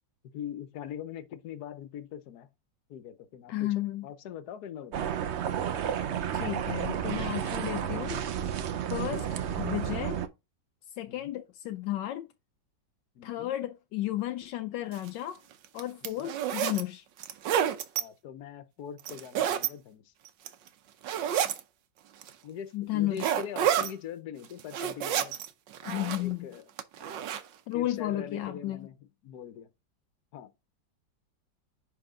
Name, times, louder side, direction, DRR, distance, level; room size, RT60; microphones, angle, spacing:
voice 1, 0.3-2.5 2.9-3.7 4.0-5.1 11.1-11.3 13.1-13.5 16.0-16.3 17.9-20.1 22.4-25.4 25.8-26.7 27.0-27.3 27.7-29.0 29.2-29.7 30.3-30.5, left 9 dB, 65° left, 1.4 m, -42 dB
voice 2, 3.5-4.1 6.3-8.2 8.9-9.3 9.5-10.2 11.0-12.3 13.2-15.4 15.7-17.0 22.7-23.3 25.8-26.5 27.7-28.9, left 14 dB, 80° left, 1.2 m, -33 dB
sound 1, 4.9-10.3, right 9 dB, 65° right, 0.6 m, -32 dB
sound 2, 14.9-15.1 15.6-16.8 17.2-18.0 19.0-19.7 20.3-20.7 21.0-21.6 22.2-22.3 23.2-23.9 24.4-25.5 25.7-26.3 26.8-27.4, right 10 dB, 85° right, 1.5 m, -29 dB
10.5 x 3.6 x 3.7 m
omnidirectional pair, 1.9 m